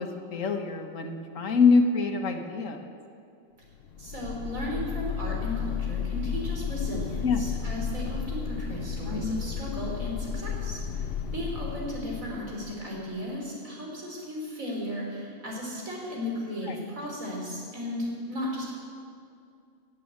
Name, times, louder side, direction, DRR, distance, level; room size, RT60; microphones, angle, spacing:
voice 1, 0.0-2.8 7.2-7.4 9.1-9.4 16.7-16.8, left 4 dB, 75° left, 5 dB, 1.6 m, -25 dB
sound 1, 3.8-13.1, left 7 dB, 55° left, 0.8 m, -33 dB
voice 2, 4.0-18.7, equal, 90° right, -2 dB, 4.1 m, -35 dB
16.5 x 8.4 x 8.8 m, 2.4 s
omnidirectional pair, 1.4 m